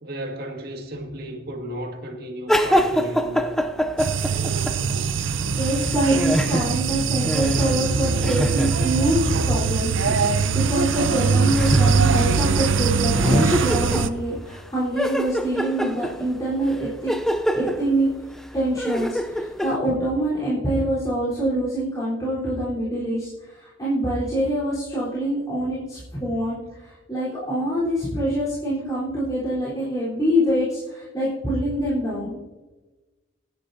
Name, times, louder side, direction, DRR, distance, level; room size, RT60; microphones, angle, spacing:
voice 1, 0.0-3.6, equal, 50° right, 2.0 m, -33 dB
sound 1, 2.5-5.1 5.4-9.2 10.0-10.5 10.9-11.0 11.5-12.4 12.7-12.8 13.1-14.6 15.0-19.8, equal, ahead, 0.5 m, -25 dB
sound 2, 4.0-14.1, right 5 dB, 70° right, 0.6 m, -22 dB
voice 2, 5.5-17.1 17.5-18.1 18.5-32.4, right 1 dB, 20° left, 4.0 m, -25 dB
25.0 x 10.0 x 2.8 m
head